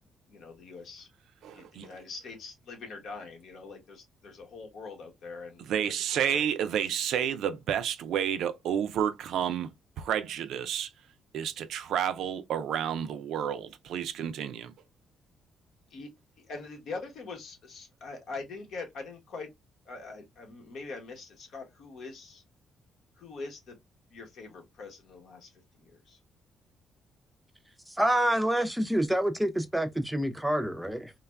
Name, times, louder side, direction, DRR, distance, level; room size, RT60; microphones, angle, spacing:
voice 1, 0.3-1.1 1.5-6.5 6.9-7.0 15.9-16.1 16.4-19.5 19.8-22.4 23.2-23.8 24.1-26.2, left 3 dB, 70° left, 1.0 m, -43 dB
voice 2, 1.4-1.9 5.7-9.7 10.0-10.9 11.3-14.7, right 9 dB, 80° right, 0.3 m, -30 dB
voice 3, 28.0-31.1, right 1 dB, 5° right, 0.5 m, -27 dB
3.2 x 2.2 x 2.2 m
cardioid pair, 90°, 0 cm